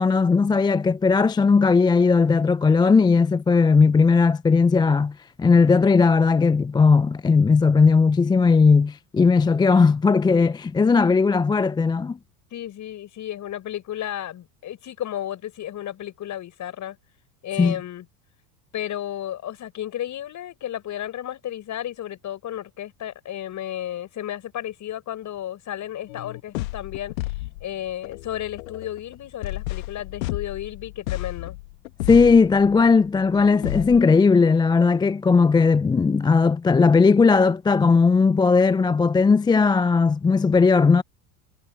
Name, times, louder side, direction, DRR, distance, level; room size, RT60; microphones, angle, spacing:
voice 1, 0.0-12.2 17.6-17.8 32.1-41.0, left 4 dB, 10° left, 0.5 m, -17 dB
voice 2, 12.5-17.0 17.4-18.0 18.7-31.6, left 11 dB, 40° left, 5.9 m, -33 dB
sound 1, 26.1-34.0, left 21 dB, 65° left, 1.4 m, -32 dB
hypercardioid pair, 80°, 45 cm